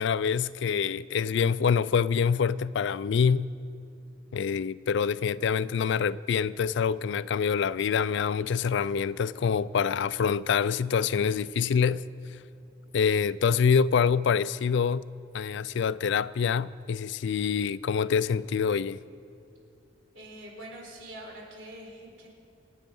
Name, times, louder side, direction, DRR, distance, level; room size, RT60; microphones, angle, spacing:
voice 1, 0.0-3.5 4.3-12.0 12.9-15.0 15.3-19.0, left 6 dB, 65° left, 0.4 m, -26 dB
voice 2, 20.1-22.3, right 1 dB, 75° right, 4.1 m, -44 dB
26.0 x 9.2 x 5.4 m
head